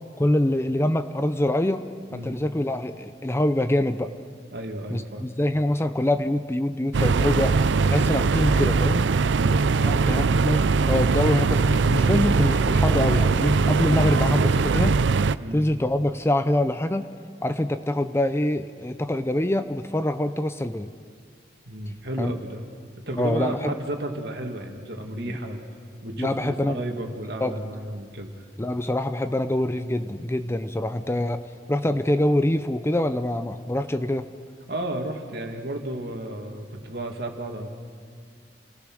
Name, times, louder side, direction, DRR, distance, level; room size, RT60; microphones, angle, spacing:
voice 1, 0.2-1.8 2.1-4.1 4.9-7.5 7.8-9.0 9.8-15.0 15.5-17.1 17.4-20.9 22.2-22.4 23.1-23.7 25.2-25.4 26.2-26.8 27.4-27.6 28.6-34.3, left 1 dB, 15° left, 10 dB, 0.6 m, -25 dB
voice 2, 4.5-5.2 9.3-10.3 15.4-15.6 21.7-22.6 23.1-25.6 26.0-28.3 34.7-37.7, right 1 dB, 65° right, 3 dB, 2.3 m, -33 dB
sound 1, 6.9-15.4, right 4 dB, 85° right, 0.5 m, -21 dB
29.0 x 18.0 x 6.3 m, 2.1 s
head